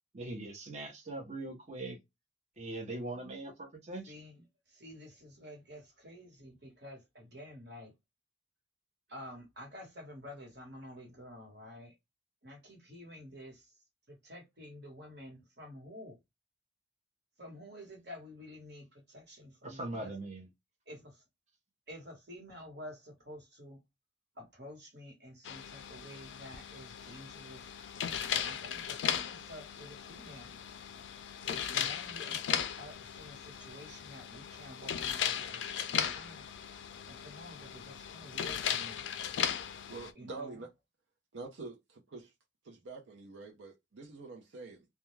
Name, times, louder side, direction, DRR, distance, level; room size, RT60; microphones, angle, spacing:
voice 1, 0.1-2.0 2.6-4.1 19.6-20.5, right 2 dB, 35° right, 0.7 m, -41 dB
voice 2, 4.1-7.9 9.1-11.9 12.4-13.8 14.1-16.2 17.4-20.1 20.9-21.2 21.9-23.8 24.3-27.7 28.3-30.6 31.4-36.5 37.1-39.0 40.1-40.6, left 1 dB, 60° right, 1.3 m, -50 dB
sound 1, 25.4-40.1, left 8 dB, 70° left, 0.4 m, -37 dB
voice 3, 39.9-40.7 41.3-42.3 42.6-44.9, right 3 dB, 85° right, 0.6 m, -46 dB
2.3 x 2.2 x 3.1 m
head